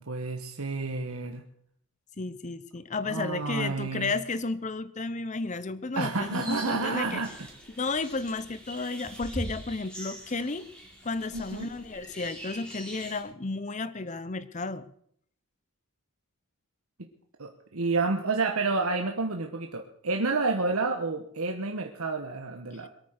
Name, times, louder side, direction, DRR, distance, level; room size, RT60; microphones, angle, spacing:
voice 1, 0.0-1.4 3.0-4.1 5.9-7.5 11.3-11.7 17.0-17.1 17.4-22.9, right 3 dB, 80° right, 4 dB, 1.3 m, -30 dB
voice 2, 2.2-7.2 7.8-10.7 11.0-14.9, left 3 dB, 35° left, 15 dB, 0.7 m, -33 dB
sound 1, 6.2-13.2, right 1 dB, 5° left, 3.0 m, -43 dB
22.5 x 9.0 x 6.5 m, 0.66 s
head